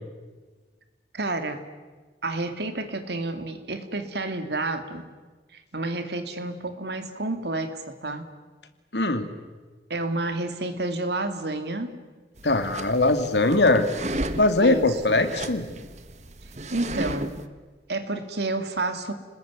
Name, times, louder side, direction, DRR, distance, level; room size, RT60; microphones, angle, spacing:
voice 1, 1.1-1.6 2.2-5.1 5.5-8.3 9.9-12.0 14.6-15.3 16.7-17.3 17.9-19.1, right 2 dB, 75° right, 8 dB, 2.5 m, -30 dB
voice 2, 8.9-9.3 12.4-13.9 14.4-15.7, left 2 dB, 80° left, 8 dB, 2.4 m, -21 dB
sound 1, 12.4-17.5, right 1 dB, 40° right, 1.3 m, -34 dB
30.0 x 20.5 x 9.6 m, 1.4 s
head